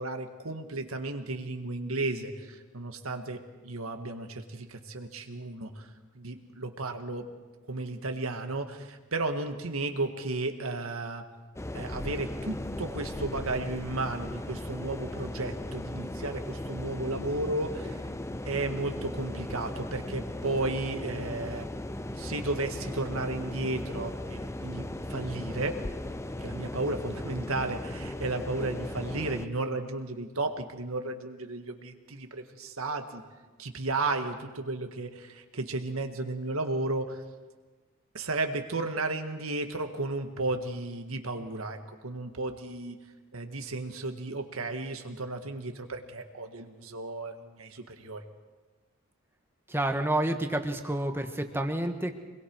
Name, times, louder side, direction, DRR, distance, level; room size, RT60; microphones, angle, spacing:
voice 1, 0.0-5.9 6.2-7.3 7.7-11.2 11.7-18.0 18.4-21.6 22.2-25.8 26.4-33.2 33.6-37.2 38.1-41.8 42.0-43.0 43.3-48.2, right 2 dB, 80° right, 6 dB, 1.8 m, -34 dB
sound 1, 11.6-29.5, left 1 dB, 15° left, 0.6 m, -37 dB
voice 2, 49.7-52.2, right 1 dB, 10° right, 5 dB, 1.5 m, -29 dB
25.5 x 21.5 x 4.7 m, 1.3 s
head